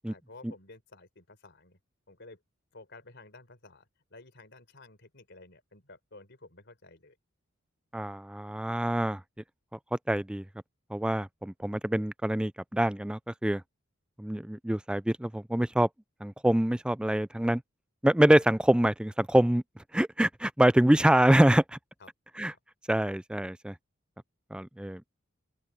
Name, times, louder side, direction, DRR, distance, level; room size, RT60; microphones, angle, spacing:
voice 1, 0.0-1.8 2.1-2.4 2.7-7.2 22.0-22.1, left 2 dB, 55° left, 4.2 m, -52 dB
voice 2, 7.9-9.2 9.9-10.4 10.9-13.6 14.2-15.9 16.2-17.6 18.0-19.6 19.9-21.8 22.4-22.5 22.9-23.7 24.5-25.0, right 1 dB, 5° right, 0.3 m, -25 dB
open air
head